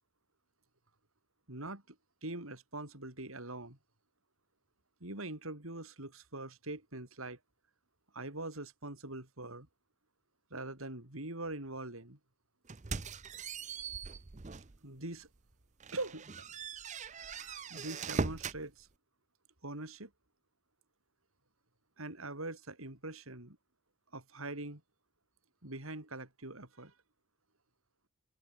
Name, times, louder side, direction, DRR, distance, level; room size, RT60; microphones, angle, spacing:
voice 1, 1.5-3.8 5.0-7.4 8.1-9.7 10.5-12.2 14.8-15.3 15.9-16.4 17.1-18.9 19.6-20.1 22.0-23.6 24.1-24.8 25.6-26.9, right 2 dB, 80° right, 5.1 m, -43 dB
sound 1, 12.7-14.8 15.2-15.4 15.8-18.6, right 4 dB, 35° right, 0.7 m, -40 dB
head